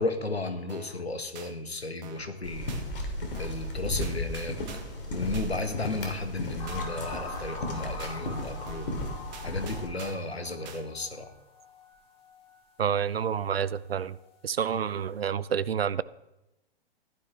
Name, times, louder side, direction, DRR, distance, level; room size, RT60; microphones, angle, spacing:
voice 1, 0.0-2.8 3.4-4.6 5.1-9.0 9.4-11.3, left 2 dB, 85° left, 7 dB, 1.6 m, -34 dB
sound 1, 0.7-1.0 1.3-1.5 2.0-2.3 2.7-2.8 3.3-3.7 4.0-5.0 5.3-5.5 6.0-6.3 6.7-6.8 7.3-7.7 8.0-8.2 8.7-9.0 9.3-10.3 10.6-10.8, right 6 dB, 45° right, 1.8 m, -46 dB
sound 2, 2.4-9.9, left 1 dB, 60° left, 2.9 m, -35 dB
sound 3, 6.6-13.8 14.1-14.4, left 2 dB, 20° left, 3.4 m, -44 dB
voice 2, 12.8-14.2 14.4-16.0, right 8 dB, 75° right, 18 dB, 0.6 m, -28 dB
15.0 x 11.5 x 3.3 m, 0.94 s
figure-of-eight pair, 115°, 31 cm